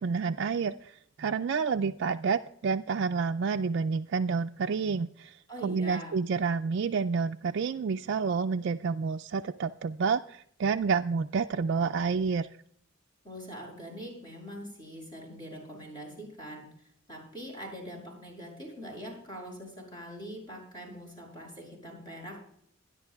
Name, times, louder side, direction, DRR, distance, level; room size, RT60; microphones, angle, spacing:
voice 1, 0.0-12.5, right 5 dB, 60° right, 4 dB, 0.3 m, -29 dB
voice 2, 5.5-6.2 13.2-16.6 17.1-22.4, equal, 20° left, -1 dB, 6.7 m, -43 dB
26.0 x 10.5 x 2.3 m, 0.68 s
head